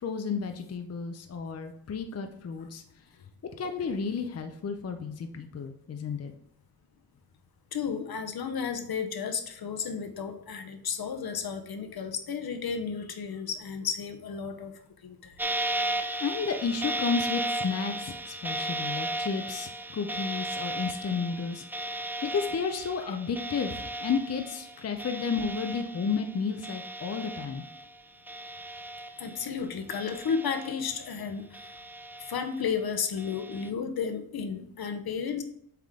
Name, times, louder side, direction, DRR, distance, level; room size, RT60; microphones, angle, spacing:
voice 1, 0.0-2.8 3.6-6.3 16.2-27.6, left 5 dB, 40° left, 6 dB, 0.6 m, -32 dB
voice 2, 7.7-14.7 15.0-15.4 23.0-23.2 29.2-31.8 32.2-35.4, left 6 dB, 70° left, 6 dB, 0.9 m, -33 dB
sound 1, 15.4-28.0 28.3-29.5 29.9-31.1 31.5-32.6 33.2-33.7, right 1 dB, 5° right, 0.4 m, -35 dB
7.5 x 3.6 x 3.6 m, 0.70 s
wide cardioid pair, 100°, 39 cm